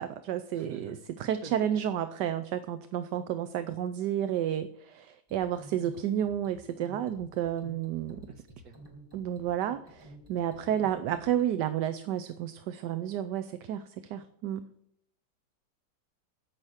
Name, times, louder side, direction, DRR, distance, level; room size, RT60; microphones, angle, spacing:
voice 1, 0.0-8.2 9.1-14.7, right 10 dB, 80° right, 11 dB, 1.3 m, -31 dB
voice 2, 0.5-1.6 8.3-8.8, right 4 dB, 55° right, 5 dB, 2.0 m, -48 dB
sound 1, 5.3-11.5, right 1 dB, 15° right, 4.0 m, -51 dB
15.0 x 6.0 x 8.0 m, 0.72 s
omnidirectional pair, 1.8 m